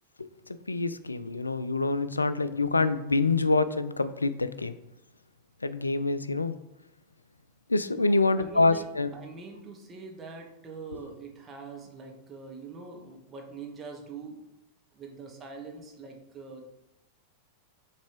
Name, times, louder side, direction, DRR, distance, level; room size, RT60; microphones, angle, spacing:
voice 1, 0.2-4.8 5.6-6.6 7.7-9.1 10.9-11.0, left 3 dB, 80° left, 14 dB, 0.3 m, -26 dB
voice 2, 7.9-8.8 9.1-14.4 14.9-16.7, right 4 dB, 25° right, 1 dB, 1.3 m, -43 dB
7.1 x 3.4 x 4.5 m, 0.89 s
figure-of-eight pair, 90°, 0 cm